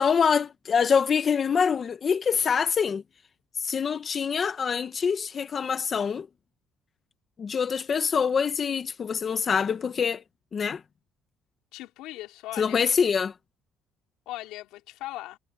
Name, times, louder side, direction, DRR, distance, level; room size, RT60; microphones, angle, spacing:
voice 1, 0.0-3.0 3.6-6.3 7.4-10.2 10.5-10.8 12.6-13.3, left 6 dB, 30° left, 0.8 m, -25 dB
voice 2, 11.7-12.8 14.3-15.4, left 16 dB, 90° left, 3.7 m, -39 dB
cardioid pair, 150°, 0 cm